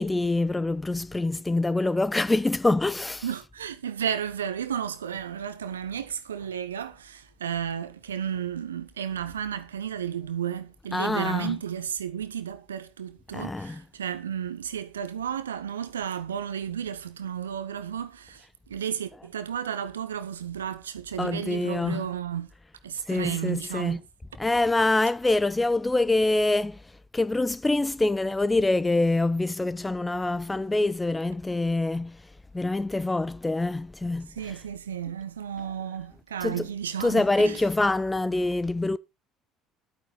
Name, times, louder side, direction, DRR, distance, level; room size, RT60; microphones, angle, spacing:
voice 1, 0.0-3.4 10.9-11.6 13.3-13.8 21.2-22.1 23.1-24.0 24.4-26.8 27.1-32.2 32.5-34.6 35.6-35.7 36.4-36.7 37.0-39.0, left 2 dB, 15° left, 0.6 m, -25 dB
voice 2, 3.2-22.5 22.8-24.0 34.4-37.6, right 9 dB, 75° right, 0.8 m, -33 dB
11.0 x 9.1 x 3.8 m
figure-of-eight pair, 60°, 0 cm